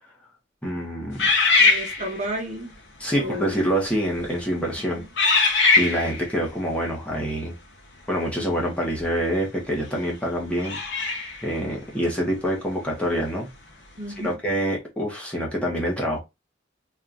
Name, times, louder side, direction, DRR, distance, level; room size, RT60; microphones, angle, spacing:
voice 1, 0.6-1.3 3.0-5.0 5.4-7.5 8.1-10.8 11.4-13.5 14.2-16.2, equal, 5° left, 1.5 m, -26 dB
sound 1, 1.2-2.4 3.2-3.4 4.1-4.4 5.2-6.3 9.0-9.1 10.6-11.5, left 4 dB, 70° left, 1.3 m, -21 dB
voice 2, 1.6-2.8 3.1-3.5 5.0-5.1 14.0-14.3, equal, 40° right, 1.2 m, -32 dB
3.8 x 3.3 x 2.6 m
head